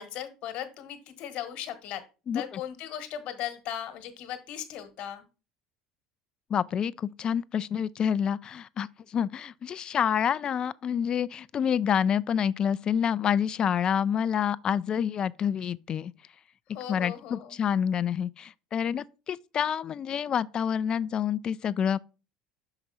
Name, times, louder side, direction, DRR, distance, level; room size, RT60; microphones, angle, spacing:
voice 1, 0.0-2.0 2.3-5.3 16.7-17.6, left 10 dB, 60° left, 1.3 m, -37 dB
voice 2, 2.3-2.6 6.5-16.1 16.9-22.0, left 8 dB, 40° left, 0.3 m, -28 dB
5.8 x 4.8 x 4.1 m
hypercardioid pair, 75°, 2 cm